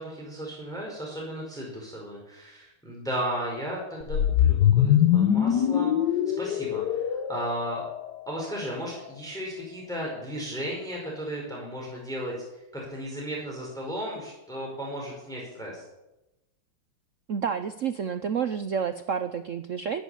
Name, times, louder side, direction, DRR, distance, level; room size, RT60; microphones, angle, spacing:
voice 1, 0.0-7.8 8.3-12.4 12.7-15.8, equal, ahead, -3 dB, 4.9 m, -35 dB
sound 1, 4.0-8.3, left 10 dB, 65° left, 1.3 m, -23 dB
voice 2, 17.3-20.0, right 7 dB, 70° right, 10 dB, 0.7 m, -29 dB
14.5 x 10.0 x 9.9 m, 0.95 s
omnidirectional pair, 2.2 m